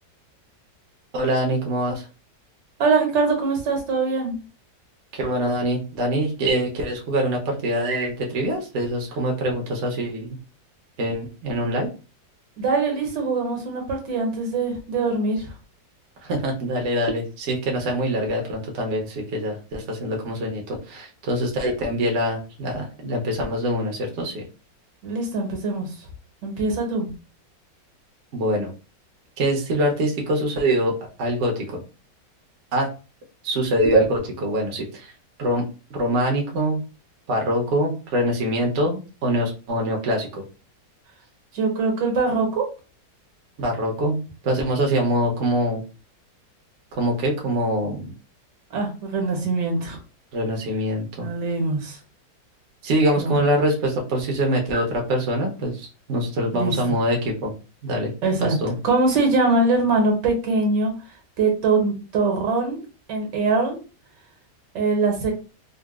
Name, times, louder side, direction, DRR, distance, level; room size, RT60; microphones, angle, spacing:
voice 1, 1.1-2.1 5.1-10.4 11.0-11.9 16.2-24.4 28.3-28.7 29.4-31.8 32.7-32.9 33.4-35.1 35.4-35.6 35.9-36.8 37.3-40.4 43.6-44.2 44.4-45.8 46.9-48.1 50.3-51.3 52.8-57.5 57.8-58.1 58.4-58.7, right 1 dB, 55° right, 0 dB, 0.8 m, -24 dB
voice 2, 2.8-4.4 12.6-15.5 25.0-25.9 26.4-27.1 41.5-42.6 48.7-50.0 51.2-52.0 53.2-53.4 56.5-56.8 58.2-58.6 58.8-60.9 61.4-62.8 63.1-63.8 64.7-65.3, right 3 dB, 75° right, 2 dB, 1.5 m, -22 dB
3.8 x 2.2 x 2.3 m, 0.33 s
omnidirectional pair, 1.9 m